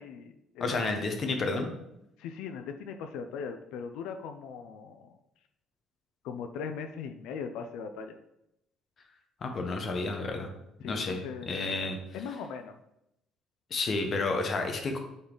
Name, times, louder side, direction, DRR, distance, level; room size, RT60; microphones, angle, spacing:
voice 1, 0.0-0.8 2.2-5.2 6.2-8.2 10.8-11.6 12.1-12.8, left 6 dB, 80° left, 6 dB, 0.6 m, -39 dB
voice 2, 0.6-1.7 9.4-10.5 10.8-11.2 11.5-12.0 13.7-15.0, left 3 dB, 30° left, 4 dB, 1.1 m, -30 dB
8.9 x 4.1 x 4.0 m, 0.84 s
cardioid pair, 165°, 0 cm